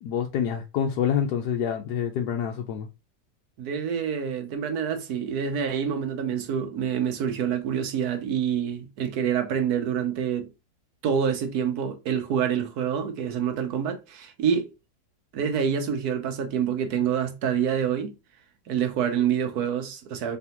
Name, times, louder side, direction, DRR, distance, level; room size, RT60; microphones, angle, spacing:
voice 1, 0.0-2.9, left 8 dB, 75° left, 1.1 m, -27 dB
voice 2, 3.6-10.5 11.0-14.7 15.3-18.1 18.7-20.4, right 8 dB, 65° right, 1.2 m, -27 dB
4.1 x 3.4 x 2.9 m
omnidirectional pair, 1.9 m